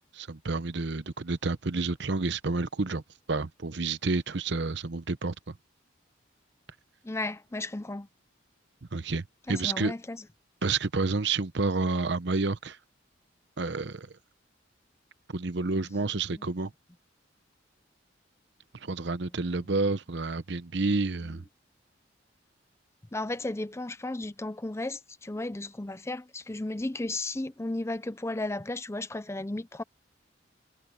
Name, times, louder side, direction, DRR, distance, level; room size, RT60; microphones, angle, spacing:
voice 1, 0.1-3.0 3.3-5.5 8.9-9.9 10.6-12.8 13.6-14.1 15.3-16.7 18.8-21.4, right 3 dB, 60° right, 0.8 m, -29 dB
voice 2, 7.0-8.1 9.5-10.2 16.3-16.4 23.1-29.8, left 2 dB, 15° left, 0.5 m, -34 dB
head